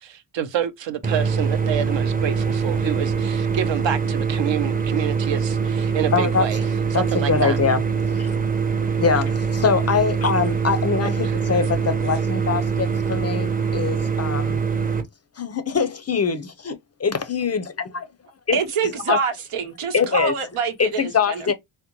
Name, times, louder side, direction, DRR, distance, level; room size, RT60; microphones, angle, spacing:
voice 1, 0.0-6.6 6.9-7.6 11.2-11.4, right 9 dB, 60° right, 0.8 m, -27 dB
sound 1, 1.0-15.0, right 5 dB, 15° right, 0.7 m, -23 dB
voice 2, 6.1-6.4 6.9-8.3 9.0-14.6 15.4-18.1 18.5-18.6 19.1-19.2 19.9-20.3 20.8-21.5, left 6 dB, 30° left, 0.5 m, -23 dB
voice 3, 18.5-21.5, right 5 dB, 90° right, 1.1 m, -26 dB
3.6 x 2.1 x 2.9 m
cardioid pair, 100°, 49 cm